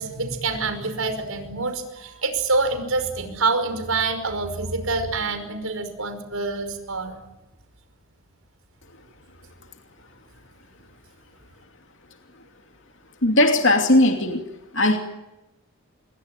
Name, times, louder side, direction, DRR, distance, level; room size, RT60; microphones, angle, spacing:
voice 1, 0.0-7.2, right 3 dB, 70° right, 8 dB, 5.4 m, -26 dB
voice 2, 13.2-14.5 14.7-15.0, left 1 dB, 55° left, 4 dB, 2.7 m, -18 dB
27.5 x 22.5 x 9.2 m, 0.98 s
head